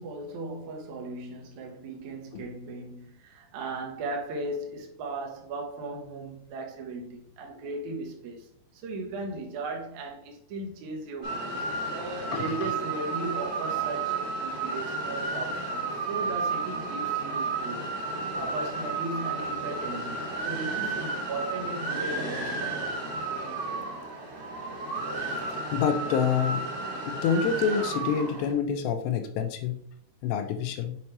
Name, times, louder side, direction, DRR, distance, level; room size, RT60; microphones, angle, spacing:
voice 1, 0.0-11.7 12.2-22.9, right 2 dB, 80° right, 1.7 m, -37 dB
sound 1, 11.2-28.5, right 3 dB, 50° right, 2.2 m, -32 dB
voice 2, 12.3-12.7 25.7-26.6 27.0-29.8 30.2-31.0, left 7 dB, 85° left, 2.8 m, -27 dB
7.1 x 4.3 x 3.2 m
omnidirectional pair, 4.9 m